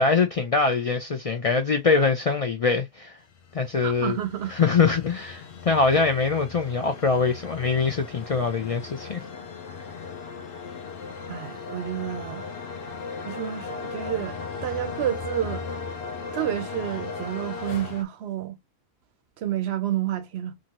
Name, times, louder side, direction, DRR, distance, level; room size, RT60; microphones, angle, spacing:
voice 1, 0.0-3.1 3.5-4.2 4.6-9.2, left 4 dB, 50° left, 0.4 m, -23 dB
sound 1, 3.3-18.0, left 5 dB, 65° left, 0.8 m, -37 dB
voice 2, 3.8-4.5 11.3-12.5 13.2-15.7 16.3-18.6 19.4-20.5, right 11 dB, 75° right, 0.9 m, -30 dB
2.7 x 2.5 x 2.9 m
omnidirectional pair, 1.1 m